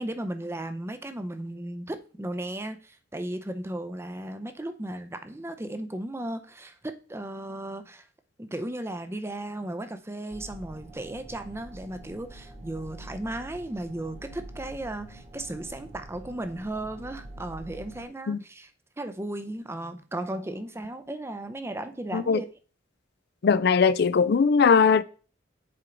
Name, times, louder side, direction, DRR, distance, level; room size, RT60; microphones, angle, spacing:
voice 1, 0.0-8.1 8.4-18.7 19.0-22.5, right 1 dB, 15° right, 0.6 m, -35 dB
sound 1, 10.3-18.0, right 1 dB, 35° right, 1.5 m, -45 dB
voice 2, 23.4-25.0, left 5 dB, 55° left, 0.4 m, -20 dB
7.7 x 4.6 x 3.8 m
head